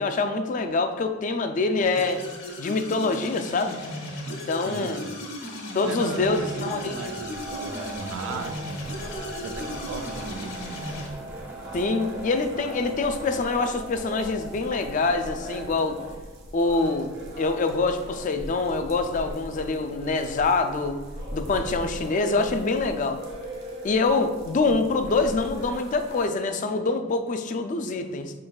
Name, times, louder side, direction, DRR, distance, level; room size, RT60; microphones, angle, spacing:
voice 1, 0.0-2.2 2.6-3.8 4.3-5.0 5.7-7.1 11.7-16.0 16.5-21.0 21.3-23.2 23.8-28.3, left 3 dB, 40° left, 7 dB, 0.3 m, -25 dB
sound 1, 1.8-11.1, left 1 dB, 60° left, 1.2 m, -36 dB
voice 2, 4.6-5.2 5.8-9.0 9.4-10.5, right 4 dB, 70° right, 6 dB, 0.4 m, -37 dB
sound 2, 6.1-16.1, right 2 dB, 10° right, 0.5 m, -41 dB
sound 3, 7.3-26.3, right 1 dB, 55° right, 0.8 m, -40 dB
5.9 x 3.7 x 2.3 m, 1.3 s
head